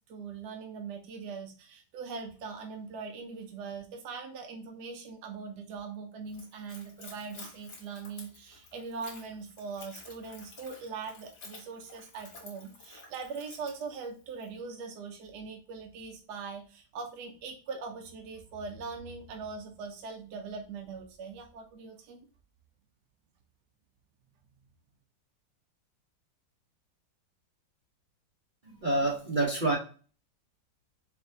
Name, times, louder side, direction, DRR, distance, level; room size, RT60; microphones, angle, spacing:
voice 1, 0.1-22.2, right 5 dB, 70° right, 2 dB, 1.2 m, -41 dB
Splash splatter / Trickle dribble, 6.2-14.6, left 3 dB, 60° left, 1.9 m, -52 dB
voice 2, 28.6-29.8, right 2 dB, 40° right, -4 dB, 0.8 m, -27 dB
4.3 x 3.4 x 2.7 m, 0.38 s
omnidirectional pair, 2.0 m